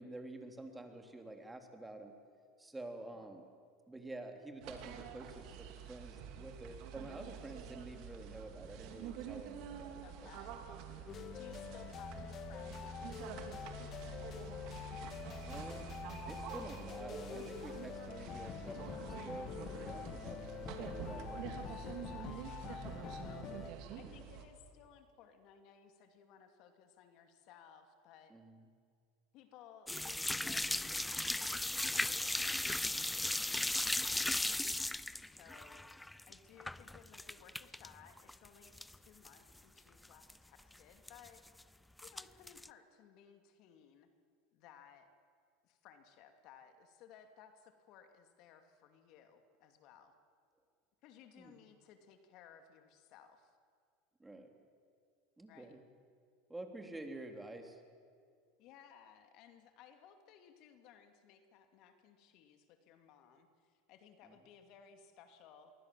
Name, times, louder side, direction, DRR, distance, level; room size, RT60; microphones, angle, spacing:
voice 1, 0.0-2.1 2.6-3.4 3.9-10.3 11.0-11.1 15.4-16.0 16.3-21.4 24.0-24.2 28.3-28.6 51.4-51.5 54.2-54.5 55.4-55.8 56.5-57.8, right 2 dB, 10° right, 4 dB, 3.4 m, -49 dB
sound 1, 4.6-24.5, right 8 dB, 65° right, 3.3 m, -48 dB
voice 2, 10.0-10.6 11.3-14.5 21.9-28.3 29.3-35.8 36.3-41.4 42.0-44.1 44.5-45.1 45.6-50.1 51.0-53.6 55.5-55.8 57.0-57.2 58.6-65.7, left 8 dB, 60° left, 7 dB, 2.6 m, -60 dB
sound 2, 11.1-23.7, left 7 dB, 40° left, 2.1 m, -46 dB
sound 3, 29.9-37.9 38.2-39.0 39.2-39.3 39.8-39.9 40.0-40.3 41.1-41.6 42.0-42.7, left 1 dB, 5° left, 0.6 m, -36 dB
27.0 x 22.5 x 7.7 m, 2.2 s
supercardioid pair, 105°, 0 cm